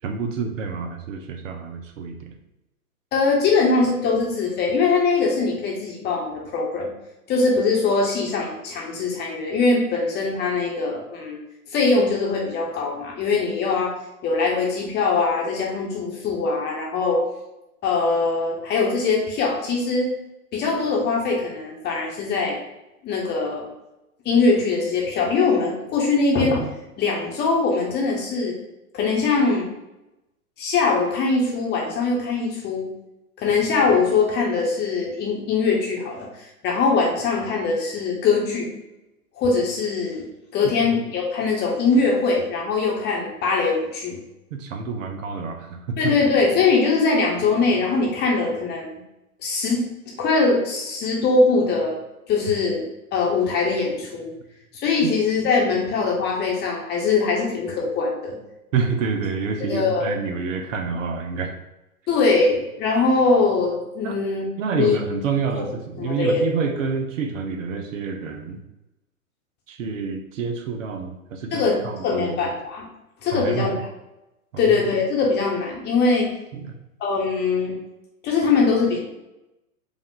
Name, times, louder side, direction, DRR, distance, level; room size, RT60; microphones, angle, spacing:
voice 1, 0.0-2.3 40.6-40.7 44.5-46.0 58.7-61.5 64.0-64.1 64.6-68.6 69.7-72.4 73.3-73.7 74.5-74.7 76.5-76.7, right 5 dB, 60° right, 5 dB, 0.8 m, -28 dB
voice 2, 3.1-6.9 7.3-11.4 11.7-14.0 14.2-17.2 17.8-20.1 20.5-22.6 23.0-23.7 24.2-26.7 27.0-28.6 28.9-29.7 30.6-32.9 33.4-38.7 39.3-40.2 40.5-44.2 46.0-48.9 49.4-49.8 50.2-52.0 52.3-52.9 53.1-54.3 54.7-58.4 59.6-60.1 62.1-64.4 64.7-65.0 65.6-65.7 66.0-66.5 71.5-72.8 73.2-73.8 74.6-76.3 77.0-77.7 78.2-79.0, left 4 dB, 20° left, -2 dB, 1.0 m, -22 dB
5.0 x 2.5 x 3.8 m, 0.94 s
hypercardioid pair, 115°, 45 cm